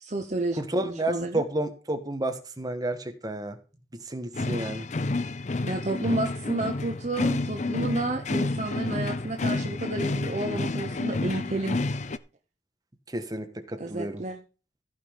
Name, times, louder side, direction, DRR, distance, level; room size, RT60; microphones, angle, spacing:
voice 1, 0.0-1.4 5.6-11.8 13.8-14.4, right 2 dB, 40° right, 5 dB, 0.9 m, -31 dB
voice 2, 0.6-3.6 4.1-4.8 13.1-14.2, right 1 dB, 20° right, 7 dB, 1.4 m, -31 dB
sound 1, 4.3-12.2, left 2 dB, 40° left, 0.5 m, -30 dB
15.0 x 5.8 x 5.1 m, 0.35 s
head